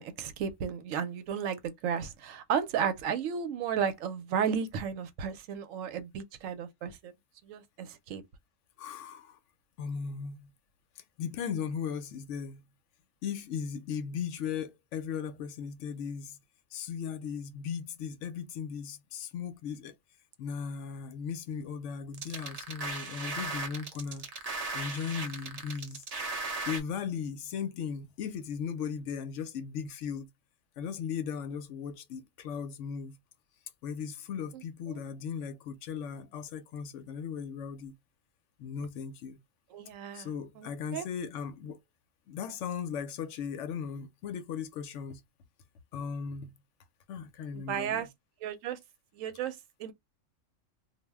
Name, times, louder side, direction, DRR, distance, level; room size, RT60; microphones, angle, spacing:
voice 1, 0.0-7.1 7.4-8.2 34.9-35.0 39.7-40.3 40.6-41.1 47.7-48.1 48.4-48.8 49.1-49.9, right 7 dB, 90° right, 1.0 m, -33 dB
voice 2, 8.8-9.4 9.8-10.5 11.0-12.6 13.2-16.4 16.7-19.9 20.4-24.3 24.7-26.0 26.7-30.3 30.8-33.2 33.8-37.9 38.6-39.4 40.1-41.8 42.3-45.2 45.9-46.5 47.1-48.1, left 7 dB, 75° left, 0.9 m, -37 dB
sound 1, 22.1-26.8, right 3 dB, 50° right, 0.4 m, -37 dB
2.3 x 2.0 x 3.3 m
omnidirectional pair, 1.3 m